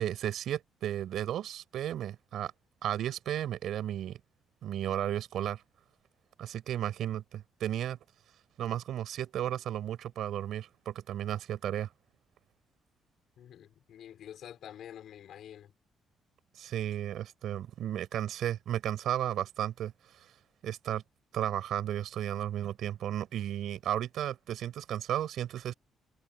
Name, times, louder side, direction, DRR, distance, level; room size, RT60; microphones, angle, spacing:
voice 1, 0.0-2.5 2.8-4.2 4.6-5.6 6.4-8.0 8.6-11.9 16.6-19.9 20.6-21.0 21.3-25.7, right 11 dB, 75° right, 5.9 m, -34 dB
voice 2, 13.4-15.7, left 10 dB, 70° left, 4.9 m, -48 dB
cardioid pair, 90°, 0 cm